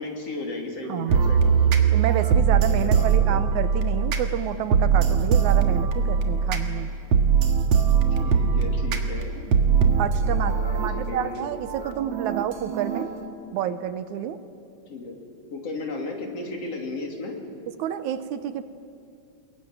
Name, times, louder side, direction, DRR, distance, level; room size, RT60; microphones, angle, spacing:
voice 1, 0.0-1.8 2.5-3.4 8.1-9.3 10.2-11.5 14.9-15.2 15.5-17.4, left 2 dB, 55° left, 1 dB, 3.8 m, -35 dB
voice 2, 0.9-1.2 1.9-6.9 9.4-9.5 10.0-13.1 13.5-14.4 17.8-18.6, right 10 dB, 85° right, 11 dB, 2.4 m, -29 dB
sound 1, 1.1-13.3, right 6 dB, 60° right, 2.5 m, -22 dB
23.0 x 21.5 x 9.2 m, 2.5 s
omnidirectional pair, 3.4 m